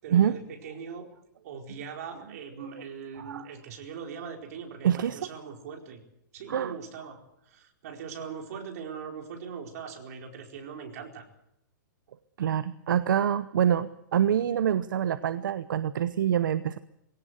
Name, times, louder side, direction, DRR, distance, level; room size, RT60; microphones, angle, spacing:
voice 1, 0.0-1.1 1.4-6.0 6.3-11.3, right 6 dB, 50° right, 2 dB, 4.6 m, -41 dB
voice 2, 4.8-5.2 6.5-6.8 12.4-16.8, right 9 dB, 75° right, 13 dB, 1.0 m, -26 dB
22.0 x 17.0 x 7.9 m, 0.80 s
hypercardioid pair, 160°, 11 cm